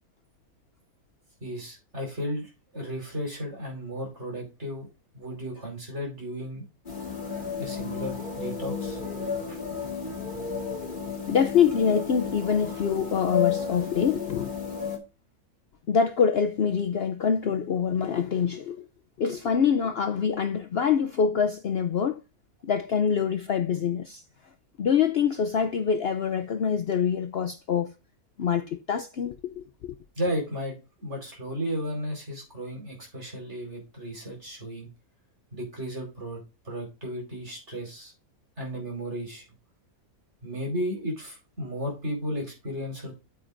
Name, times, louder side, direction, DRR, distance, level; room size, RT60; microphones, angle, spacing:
voice 1, 1.4-4.9 5.1-6.6 7.6-9.0 9.5-9.6 30.2-34.9 35.5-36.4 36.7-38.1 38.6-39.4 40.4-43.1, equal, 50° right, 5.2 m, -34 dB
sound 1, 6.9-15.0, left 6 dB, 35° left, 2.4 m, -32 dB
voice 2, 11.3-14.5 15.9-18.9 19.2-22.2 22.6-24.2 24.8-27.9 28.4-29.9, left 7 dB, 55° left, 0.7 m, -25 dB
9.4 x 8.8 x 2.6 m
omnidirectional pair, 1.5 m